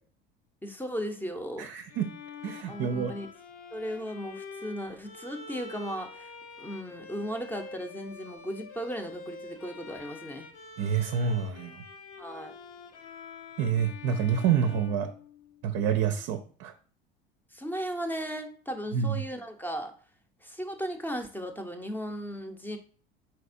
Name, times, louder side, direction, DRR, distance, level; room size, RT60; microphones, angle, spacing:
voice 1, 0.6-1.7 2.7-3.3 3.7-6.3 6.6-10.5 12.2-12.5 17.5-19.9 20.4-22.8, equal, 5° left, 6 dB, 0.7 m, -36 dB
voice 2, 1.6-2.1 2.4-3.1 10.8-11.8 13.6-15.1 15.6-16.7 18.9-19.2, right 7 dB, 55° right, 6 dB, 0.5 m, -28 dB
Bowed string instrument, 1.9-15.8, left 4 dB, 55° left, 0.9 m, -46 dB
4.4 x 4.0 x 2.5 m, 0.44 s
hypercardioid pair, 75°, 30 cm